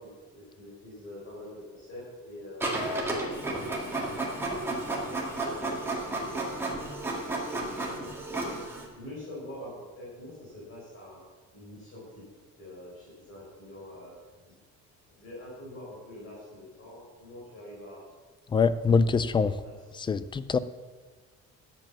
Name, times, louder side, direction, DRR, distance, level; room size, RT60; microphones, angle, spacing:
voice 1, 0.0-4.6 5.0-8.6 8.9-11.2 11.5-12.2 12.6-14.2 15.1-18.0 19.6-19.7 20.1-20.2, left 1 dB, 45° left, -6 dB, 4.8 m, -45 dB
Printer, 2.6-8.9, right 2 dB, 10° right, 2.2 m, -32 dB
voice 2, 18.5-19.6 20.0-20.6, left 5 dB, 15° left, 15 dB, 0.3 m, -24 dB
11.0 x 7.7 x 7.2 m, 1.3 s
cardioid pair, 165°, 29 cm